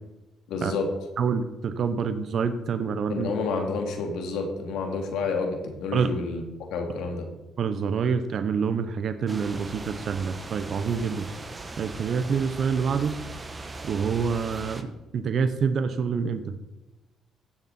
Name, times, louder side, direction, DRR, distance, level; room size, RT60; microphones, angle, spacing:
voice 1, 0.5-0.9 3.1-6.4 6.7-7.3, left 4 dB, 85° left, 3 dB, 2.3 m, -29 dB
voice 2, 1.2-3.3 5.9-6.1 7.6-11.3 11.8-13.1 13.8-14.9 15.1-16.4, right 6 dB, 60° right, 9 dB, 0.9 m, -26 dB
sound 1, 9.3-14.8, right 3 dB, 25° right, 1.2 m, -39 dB
16.0 x 7.0 x 4.4 m, 1.0 s
cardioid pair, 90°, 0 cm